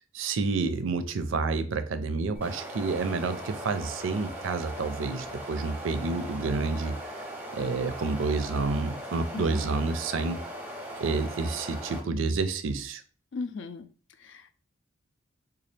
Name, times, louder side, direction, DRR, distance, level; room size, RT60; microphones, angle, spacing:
voice 1, 0.1-7.1 7.5-10.4 11.0-13.0, right 4 dB, 80° right, 0.4 m, -29 dB
sound 1, 2.3-12.0, right 1 dB, 10° right, 0.6 m, -39 dB
voice 2, 9.3-9.7 13.3-13.9 14.2-14.5, left 4 dB, 65° left, 0.4 m, -37 dB
4.1 x 2.3 x 3.2 m
head